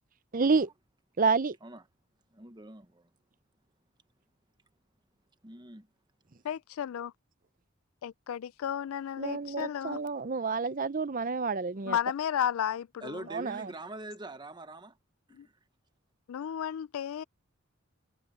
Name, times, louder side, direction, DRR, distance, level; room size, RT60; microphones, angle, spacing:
voice 1, 0.3-0.7 1.2-1.6 9.2-12.0 13.3-13.7, right 4 dB, 40° right, 0.6 m, -29 dB
voice 2, 2.3-3.1 5.4-5.9 13.0-15.0 15.3-15.5, right 2 dB, 20° right, 1.1 m, -44 dB
voice 3, 6.4-7.1 8.0-10.0 11.9-13.3 15.4-15.5 16.3-17.2, left 9 dB, 75° left, 0.3 m, -33 dB
head